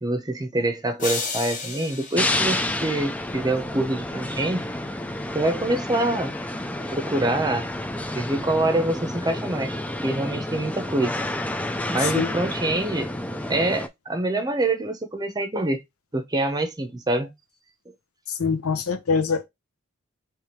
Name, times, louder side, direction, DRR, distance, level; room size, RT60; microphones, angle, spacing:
voice 1, 0.0-4.7 5.3-6.3 6.7-7.7 8.1-9.8 10.0-11.1 11.9-13.1 13.5-15.8 16.1-17.3, right 2 dB, 20° right, 0.7 m, -25 dB
sound 1, 1.0-3.3, left 4 dB, 35° left, 1.3 m, -33 dB
sound 2, 2.2-13.9, left 1 dB, 5° left, 0.4 m, -29 dB
voice 2, 12.0-12.3 18.4-19.5, left 5 dB, 90° left, 0.8 m, -24 dB
3.4 x 3.2 x 4.4 m
head